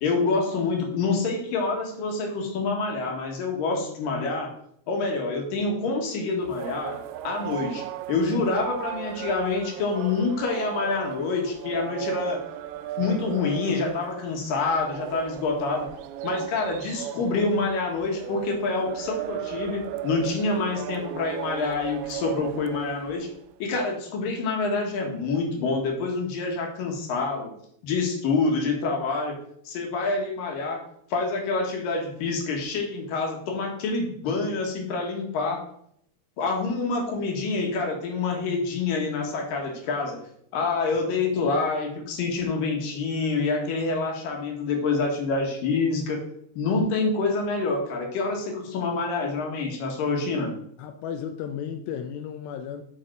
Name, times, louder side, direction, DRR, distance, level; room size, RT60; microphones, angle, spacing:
voice 1, 0.0-4.6 4.9-7.0 7.2-7.8 8.1-12.4 13.0-15.9 16.2-23.3 23.6-27.5 27.8-29.4 29.7-30.8 31.1-35.6 36.4-40.2 40.5-46.2 46.6-50.5, left 3 dB, 65° left, 1 dB, 2.9 m, -27 dB
sound 1, 6.4-23.5, right 12 dB, 85° right, 2.3 m, -36 dB
voice 2, 50.8-52.8, left 8 dB, 80° left, 4 dB, 2.2 m, -34 dB
7.6 x 5.8 x 4.5 m, 0.68 s
omnidirectional pair, 4.9 m